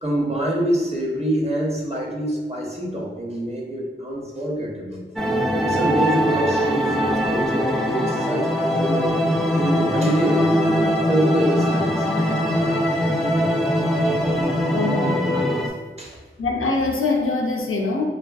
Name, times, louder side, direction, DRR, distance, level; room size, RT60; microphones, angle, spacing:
voice 1, 0.0-5.1 5.6-9.0 9.5-10.5 11.1-12.1 16.0-16.2, right 1 dB, 30° right, -3 dB, 0.7 m, -25 dB
sound 1, 5.2-15.7, equal, ahead, 0.3 m, -21 dB
voice 2, 14.7-15.6 16.4-18.1, left 3 dB, 85° left, 1 dB, 0.4 m, -23 dB
3.1 x 2.4 x 2.3 m, 1.4 s
wide cardioid pair, 45°, 21 cm